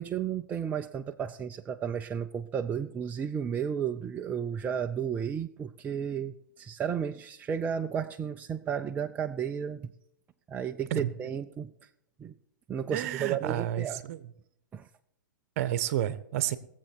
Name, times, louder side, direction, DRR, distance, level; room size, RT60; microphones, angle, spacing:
voice 1, 0.0-9.9 10.5-11.7 12.2-12.3 12.7-14.0 14.7-14.9, right 8 dB, 15° right, 6 dB, 0.5 m, -33 dB
voice 2, 12.9-14.2 15.6-16.6, right 12 dB, 50° right, 15 dB, 1.1 m, -30 dB
19.5 x 7.7 x 4.5 m, 0.75 s
hypercardioid pair, 125°, 10 cm